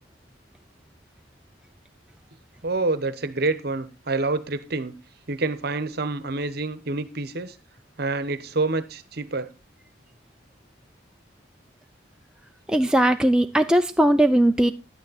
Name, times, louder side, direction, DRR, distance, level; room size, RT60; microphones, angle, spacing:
voice 1, 2.6-5.0 5.3-7.6 8.0-9.5, right 3 dB, 55° right, 1.0 m, -27 dB
voice 2, 12.7-14.7, right 1 dB, 5° right, 0.5 m, -19 dB
11.0 x 9.4 x 4.1 m
head